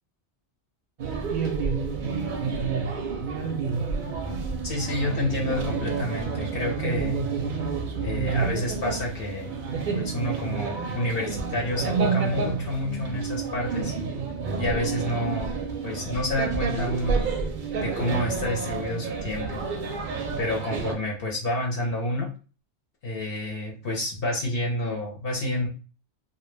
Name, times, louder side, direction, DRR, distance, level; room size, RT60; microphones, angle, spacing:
sound 1, 1.0-20.9, right 5 dB, 60° right, 0.5 m, -29 dB
voice 1, 4.6-7.2 8.0-9.6 9.9-13.9 14.6-15.6 15.8-17.2 17.8-19.6 20.4-22.3 23.0-25.7, left 1 dB, 60° left, 0 dB, 0.8 m, -29 dB
2.2 x 2.1 x 3.1 m, 0.36 s
omnidirectional pair, 1.1 m